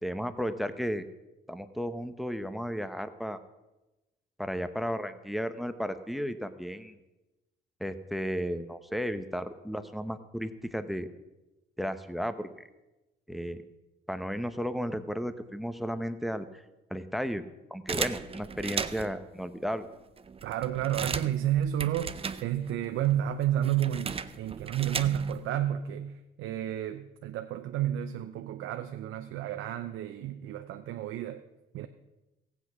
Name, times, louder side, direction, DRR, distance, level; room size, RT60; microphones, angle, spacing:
voice 1, 0.0-1.1 1.5-3.4 4.4-7.0 7.8-11.1 11.8-12.5 13.3-13.6 14.1-16.6 16.9-17.4 17.7-19.9, equal, ahead, 11 dB, 0.9 m, -34 dB
sound 1, 17.9-19.2 19.9-20.0 20.2-22.9 23.1-25.5, right 5 dB, 30° right, 0.6 m, -36 dB
voice 2, 20.4-31.4 31.7-31.9, right 11 dB, 90° right, 7 dB, 0.6 m, -31 dB
15.0 x 8.3 x 6.0 m, 1.0 s
cardioid pair, 90°, 20 cm